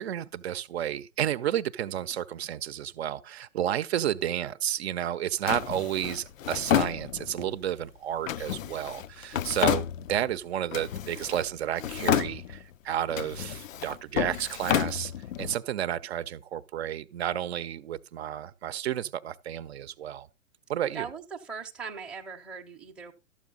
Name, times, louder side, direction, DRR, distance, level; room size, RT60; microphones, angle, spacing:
voice 1, 0.0-15.1 15.4-20.3 20.7-21.1, right 11 dB, 55° right, 0.7 m, -31 dB
Drawer open or close, 5.5-7.5 8.3-10.4 10.7-11.5 11.8-12.7 13.1-15.5, left 10 dB, 75° left, 0.6 m, -30 dB
voice 2, 20.9-23.1, right 6 dB, ahead, 0.7 m, -39 dB
12.5 x 7.3 x 3.8 m
hypercardioid pair, 135°, 39 cm